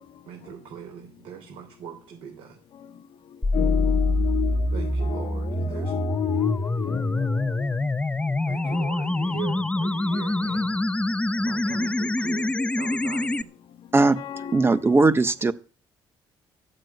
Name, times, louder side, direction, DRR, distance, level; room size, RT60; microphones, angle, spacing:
voice 1, 0.3-2.6 4.7-5.9 8.5-10.7 11.4-13.5, right 8 dB, 90° right, 3.7 m, -40 dB
sound 1, 3.4-13.4, left 2 dB, 15° left, 0.8 m, -25 dB
voice 2, 3.5-7.7 8.6-8.9 10.5-10.6 12.5-13.0 14.2-14.7, left 11 dB, 70° left, 1.2 m, -31 dB
voice 3, 14.5-15.5, right 3 dB, 25° right, 1.3 m, -18 dB
13.5 x 7.8 x 9.4 m
cardioid pair, 80°, 9 cm